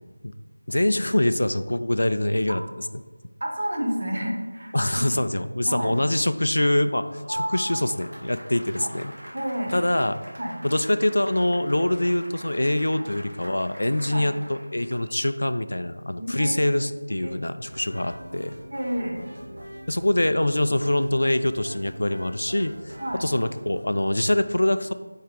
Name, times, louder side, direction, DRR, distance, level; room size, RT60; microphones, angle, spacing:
voice 1, 0.7-2.6 4.7-9.1 9.7-10.2 10.6-18.6 19.9-23.0 23.2-24.9, left 1 dB, 70° left, 10 dB, 0.3 m, -24 dB
voice 2, 3.4-5.0 5.7-6.0 7.3-7.8 8.8-8.9 9.3-9.7 10.4-10.5 13.0-13.1 14.1-14.2 16.2-16.6 17.1-17.3 18.7-19.2 23.0-23.2, equal, 35° right, -1 dB, 1.0 m, -30 dB
Applause, 6.6-15.3, equal, 80° right, 1.3 m, -45 dB
sound 1, 17.6-23.9, equal, 55° right, 1.2 m, -43 dB
4.7 x 4.5 x 5.0 m, 1.3 s
figure-of-eight pair, 180°, 0 cm